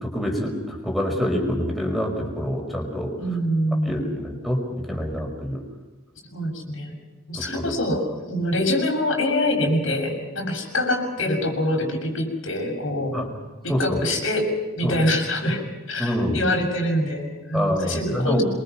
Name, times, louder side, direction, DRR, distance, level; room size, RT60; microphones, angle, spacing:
voice 1, 0.0-3.2 3.8-5.6 7.4-7.7 13.1-13.3 13.7-14.0 14.8-15.0 16.0-16.4 17.5-18.4, equal, ahead, 0 dB, 5.2 m, -26 dB
voice 2, 3.2-4.1 6.3-6.9 7.3-13.2 13.6-14.5 14.8-18.4, left 1 dB, 80° left, 1 dB, 7.1 m, -25 dB
27.0 x 23.5 x 5.8 m, 1.2 s
head